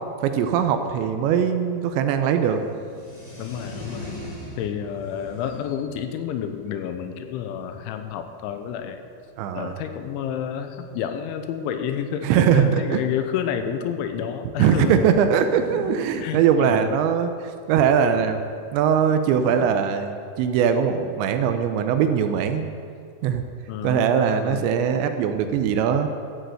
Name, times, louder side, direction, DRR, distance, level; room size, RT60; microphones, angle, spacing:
voice 1, 0.2-2.6 9.4-9.7 12.2-13.0 14.6-18.4 18.7-22.7 23.2-23.4 23.8-26.1, right 8 dB, 80° right, 8 dB, 2.8 m, -21 dB
sound 1, 2.4-8.6 9.2-9.3 9.5-9.6 9.8-10.0 10.9-11.0 11.2-11.3 12.1-13.6 15.1-17.7 19.1-19.6, left 1 dB, 15° left, 1.2 m, -41 dB
voice 2, 3.4-4.2 4.6-9.0 9.5-15.0 16.2-16.9 23.7-24.6, left 8 dB, 85° left, 7 dB, 3.2 m, -30 dB
14.0 x 8.4 x 7.9 m, 2.3 s
omnidirectional pair, 5.5 m